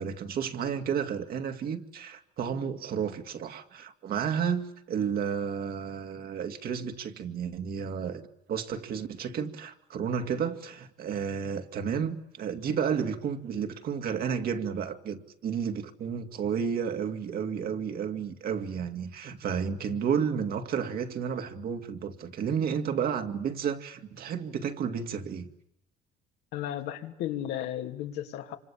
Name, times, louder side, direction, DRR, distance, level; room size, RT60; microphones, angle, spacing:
voice 1, 0.0-25.5, right 7 dB, 60° right, 2.5 m, -32 dB
voice 2, 26.5-28.6, left 11 dB, 90° left, 2.9 m, -34 dB
27.0 x 25.5 x 8.7 m
cardioid pair, 110°, 17 cm